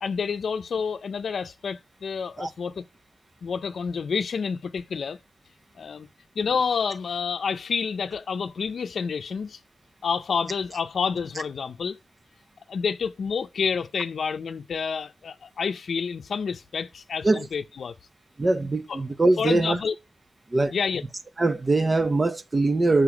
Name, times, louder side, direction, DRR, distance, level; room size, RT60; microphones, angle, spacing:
voice 1, 0.0-2.8 3.4-5.2 5.8-6.1 6.4-9.6 10.0-12.0 12.7-17.9 18.9-19.0 19.4-19.9 20.7-21.0, left 6 dB, 80° left, 0.6 m, -29 dB
voice 2, 18.4-19.8 20.5-20.7 21.4-23.0, right 2 dB, 30° right, 0.8 m, -22 dB
6.8 x 4.6 x 6.0 m
wide cardioid pair, 125°, 0 cm